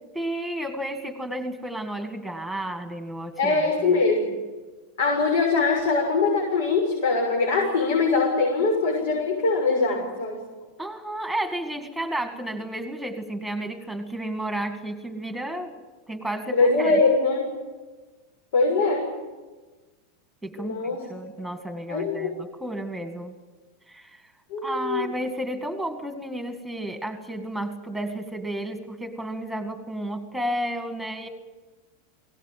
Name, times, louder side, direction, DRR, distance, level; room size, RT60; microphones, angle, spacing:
voice 1, 0.1-4.0 10.8-15.8 16.1-17.0 20.4-23.3 23.9-24.2 24.6-31.3, right 1 dB, ahead, 6 dB, 2.0 m, -32 dB
voice 2, 3.4-4.2 5.0-10.4 16.5-17.4 18.5-19.1 20.6-21.0 21.9-22.3 24.5-25.1, left 3 dB, 75° left, -1 dB, 6.5 m, -22 dB
22.0 x 18.0 x 9.2 m, 1.3 s
supercardioid pair, 170°, 0 cm